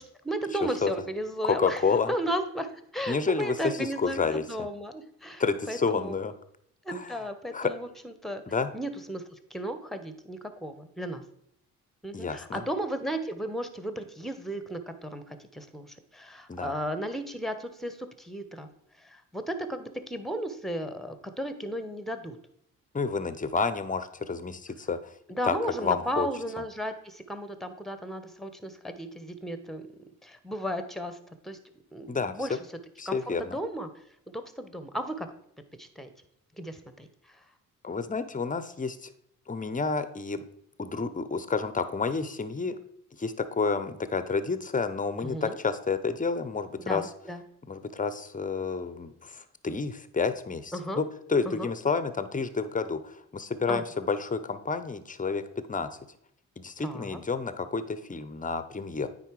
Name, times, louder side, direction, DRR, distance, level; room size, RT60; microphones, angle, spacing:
voice 1, 0.0-1.8 2.1-6.2 6.8-8.4 8.7-11.2 12.0-18.7 19.0-22.4 25.3-29.9 30.2-31.2 31.4-31.6 31.9-32.6 33.1-33.9 34.3-35.3 35.8-36.1 36.6-37.4 45.2-45.6 46.8-47.4 50.7-51.0 51.4-51.7 53.7-53.8 56.8-57.2, equal, ahead, 9 dB, 1.1 m, -35 dB
voice 2, 1.4-2.1 3.1-4.4 5.4-6.3 6.9-7.1 7.5-7.7 8.5-8.7 12.1-12.6 16.5-16.7 22.9-25.0 25.4-25.6 25.8-26.3 32.1-32.3 33.0-33.6 37.8-39.1 39.5-40.4 40.8-42.8 43.2-47.0 47.7-55.4 55.7-55.9 56.6-59.1, left 4 dB, 20° left, 12 dB, 0.8 m, -29 dB
9.3 x 4.0 x 4.7 m, 0.72 s
hypercardioid pair, 50°, 41 cm